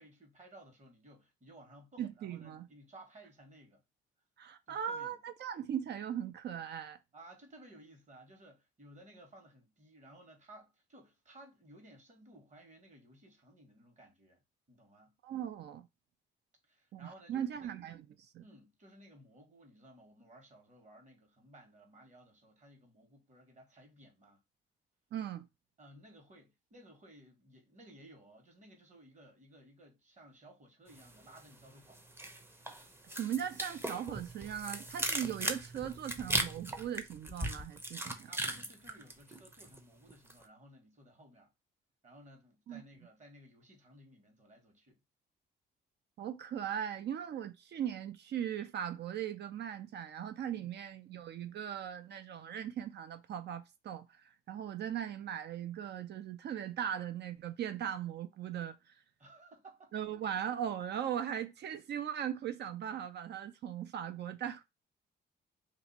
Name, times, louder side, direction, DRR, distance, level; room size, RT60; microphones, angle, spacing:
voice 1, 0.0-3.8 4.7-5.2 7.1-14.4 14.7-15.1 16.6-17.8 18.4-24.4 25.8-32.0 38.3-41.5 42.0-45.0 50.6-50.7 59.2-59.9, right 1 dB, 35° right, 1.4 m, -58 dB
voice 2, 2.0-2.7 4.4-7.0 15.2-15.9 16.9-18.4 25.1-25.5 33.1-38.3 42.7-42.8 46.2-59.0 59.9-64.6, right 9 dB, 60° right, 0.5 m, -39 dB
sound 1, 31.0-31.6 31.9-39.8 40.1-40.4, right 1 dB, 10° right, 0.6 m, -38 dB
2.7 x 2.5 x 4.0 m
cardioid pair, 90°, 20 cm